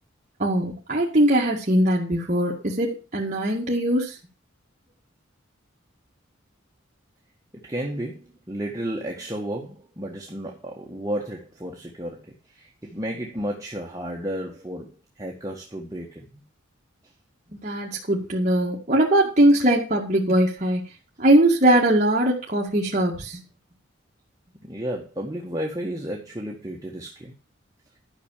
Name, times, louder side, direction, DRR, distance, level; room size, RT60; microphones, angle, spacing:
voice 1, 0.4-4.2 17.6-20.8 21.2-23.4, right 1 dB, 35° right, -3 dB, 2.0 m, -21 dB
voice 2, 7.5-16.4 24.6-27.3, equal, 15° right, -1 dB, 1.6 m, -33 dB
12.0 x 6.2 x 7.4 m, 0.32 s
head